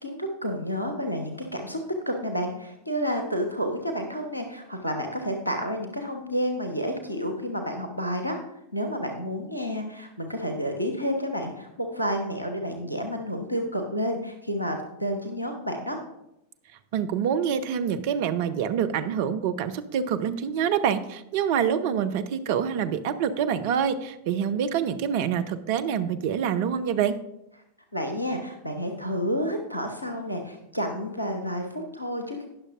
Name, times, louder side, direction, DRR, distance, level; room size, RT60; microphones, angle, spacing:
voice 1, 0.0-1.8 2.1-8.4 8.7-16.0 27.9-32.5, equal, 85° left, 4 dB, 1.0 m, -30 dB
voice 2, 16.9-27.2, right 8 dB, 50° right, 10 dB, 0.7 m, -26 dB
19.0 x 6.5 x 2.5 m, 0.87 s
figure-of-eight pair, 90°, 0 cm